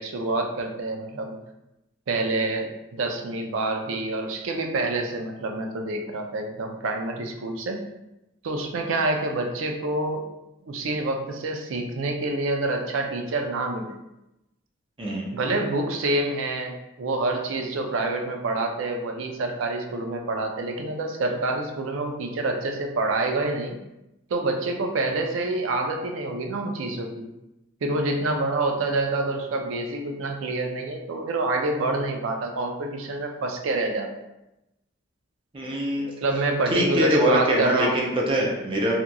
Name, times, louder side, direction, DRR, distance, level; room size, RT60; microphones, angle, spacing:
voice 1, 0.0-1.4 2.1-7.8 8.4-10.2 10.6-13.9 15.3-23.8 24.3-27.3 27.8-34.1 36.0-38.1, right 2 dB, 80° right, 4 dB, 0.4 m, -27 dB
voice 2, 35.5-36.1 36.7-38.9, equal, 25° right, -2 dB, 0.5 m, -23 dB
2.8 x 2.4 x 2.2 m, 0.92 s
head